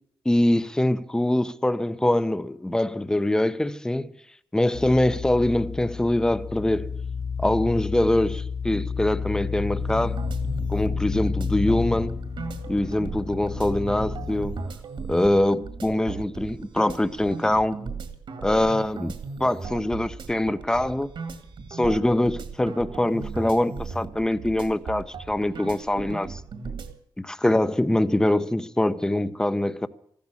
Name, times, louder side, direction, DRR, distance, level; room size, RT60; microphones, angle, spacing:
voice 1, 0.2-4.1 4.5-7.0 7.4-10.2 10.7-12.2 12.7-14.7 15.1-17.8 18.4-19.1 19.4-21.1 21.7-26.4 27.2-29.9, left 1 dB, 5° left, 0.7 m, -23 dB
sound 1, 4.7-14.7, left 5 dB, 80° left, 2.3 m, -31 dB
sound 2, 9.8-26.9, right 5 dB, 65° right, 2.2 m, -37 dB
15.5 x 12.5 x 7.1 m
wide cardioid pair, 155°, 9 cm